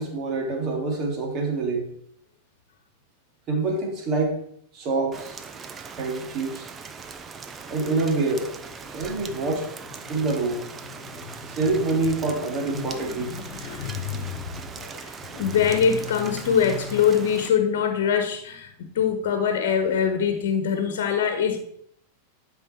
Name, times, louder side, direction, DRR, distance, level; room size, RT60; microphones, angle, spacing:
voice 1, 0.0-1.9 3.5-4.4 4.7-5.4 6.0-6.7 7.7-8.5 8.9-9.7 10.1-10.7 11.5-13.3, right 3 dB, 35° right, 2 dB, 2.6 m, -26 dB
Rain, 5.1-17.5, right 5 dB, 20° right, 0.8 m, -40 dB
voice 2, 11.0-11.6 12.8-21.6, left 7 dB, 55° left, 7 dB, 1.3 m, -24 dB
11.5 x 5.3 x 4.5 m, 0.68 s
figure-of-eight pair, 90°, 0 cm